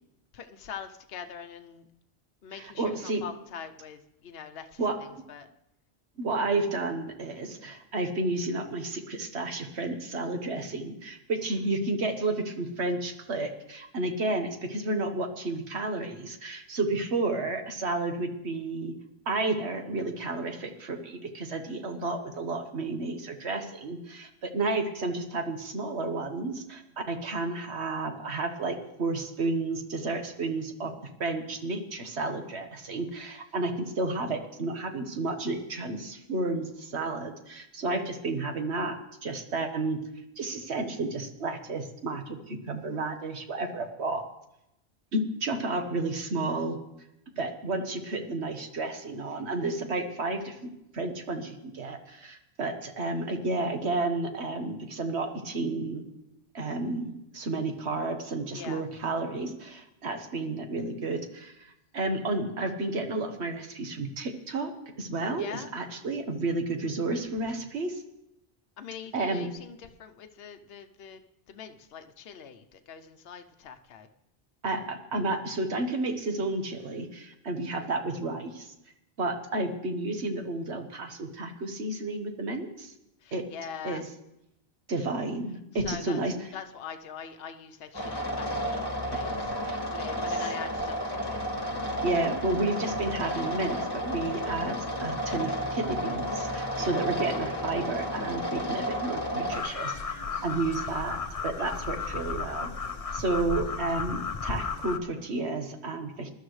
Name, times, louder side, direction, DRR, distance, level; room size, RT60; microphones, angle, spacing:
voice 1, 0.3-1.8 2.4-4.8 5.3-5.5 58.5-58.8 65.4-65.7 68.8-71.2 71.5-74.1 83.2-84.0 85.8-86.2 86.5-88.8 89.1-91.4 96.8-97.0, left 7 dB, 65° left, 7 dB, 1.0 m, -43 dB
voice 2, 2.5-3.2 4.8-5.0 6.2-18.9 19.3-26.8 27.1-30.9 31.2-40.0 40.4-44.2 45.1-46.8 47.4-56.0 56.5-61.5 61.9-64.7 65.0-68.0 69.1-69.5 74.6-78.7 79.2-82.9 83.3-83.4 83.8-84.1 84.9-86.5 89.2-89.4 89.6-89.8 90.3-90.5 92.0-101.2 101.4-102.7 103.1-106.3, right 2 dB, 75° right, 6 dB, 1.6 m, -31 dB
sound 1, 87.9-99.6, equal, 20° left, 1.6 m, -32 dB
sound 2, 99.5-105.0, left 5 dB, 35° left, 0.7 m, -34 dB
20.5 x 12.0 x 3.2 m, 0.84 s
omnidirectional pair, 1.1 m